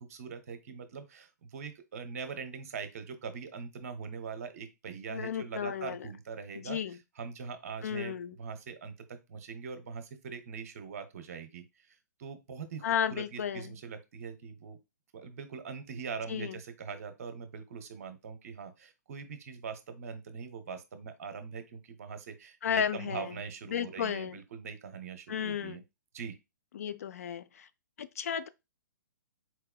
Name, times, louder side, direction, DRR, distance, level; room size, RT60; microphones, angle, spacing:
voice 1, 0.0-6.8 7.2-14.8 15.1-25.8 26.1-26.3, right 5 dB, 50° right, 0.9 m, -42 dB
voice 2, 5.1-6.1 6.6-7.0 7.8-8.4 12.8-13.8 16.3-16.6 22.6-23.4 23.7-24.4 25.3-25.8 26.7-27.7 28.0-28.5, left 8 dB, 50° left, 0.3 m, -33 dB
4.5 x 4.2 x 2.2 m
figure-of-eight pair, 120°, 10 cm